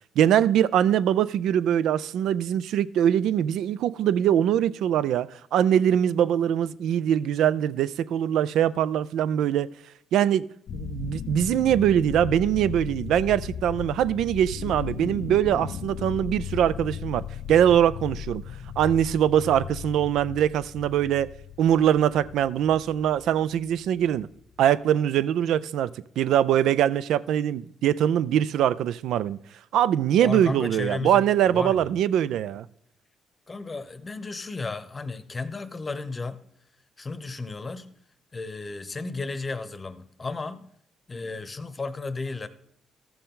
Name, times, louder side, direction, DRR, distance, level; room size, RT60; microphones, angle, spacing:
voice 1, 0.2-9.7 10.1-10.5 10.7-17.2 17.5-18.4 18.8-21.3 21.6-24.3 24.6-25.9 26.2-29.4 29.7-32.7, right 10 dB, 80° right, 0.3 m, -22 dB
sound 1, 10.7-24.6, left 9 dB, 65° left, 0.4 m, -37 dB
voice 2, 30.2-32.0 33.5-36.4 37.0-37.9 38.3-40.6 41.1-42.5, left 3 dB, 30° left, 0.8 m, -34 dB
14.0 x 6.8 x 3.8 m
cardioid pair, 90°, 0 cm